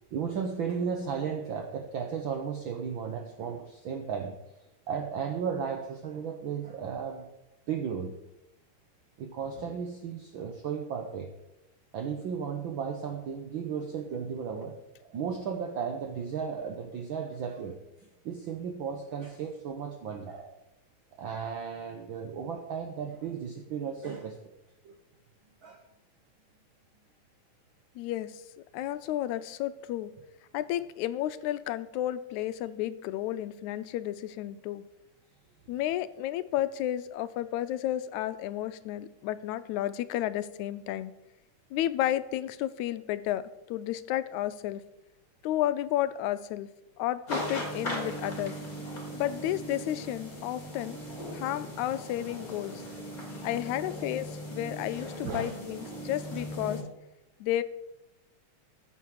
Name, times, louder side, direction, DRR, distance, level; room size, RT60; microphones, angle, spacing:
voice 1, 0.1-4.3 4.9-7.3 7.7-8.2 9.2-11.3 11.9-17.8 18.2-20.6 21.2-24.5 24.8-25.0 25.6-25.8 53.3-53.6 54.6-54.7 55.2-55.6, right 6 dB, 75° right, 4 dB, 1.1 m, -35 dB
voice 2, 28.0-28.4 28.7-30.1 30.5-34.9 35.7-41.1 41.7-44.8 45.4-46.7 47.0-48.6 49.1-51.0 51.3-52.8 53.4-56.8 57.4-57.6, left 13 dB, 85° left, 13 dB, 1.9 m, -32 dB
sound 1, 47.3-56.8, equal, 30° left, 3.4 m, -38 dB
15.0 x 7.4 x 4.7 m, 0.93 s
omnidirectional pair, 3.3 m